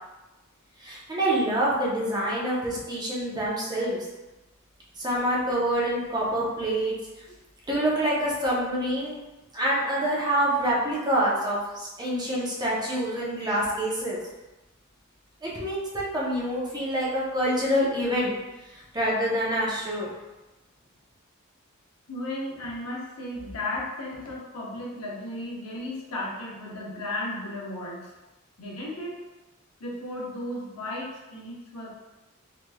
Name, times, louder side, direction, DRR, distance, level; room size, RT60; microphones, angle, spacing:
voice 1, 0.8-4.0 5.0-6.9 7.7-9.2 9.5-14.2 15.4-18.3 18.7-20.1, right 1 dB, 20° right, -6 dB, 0.7 m, -26 dB
voice 2, 22.1-28.1 28.6-29.2 29.8-31.9, left 1 dB, 80° left, -3 dB, 0.8 m, -35 dB
3.2 x 3.0 x 2.2 m, 1.1 s
head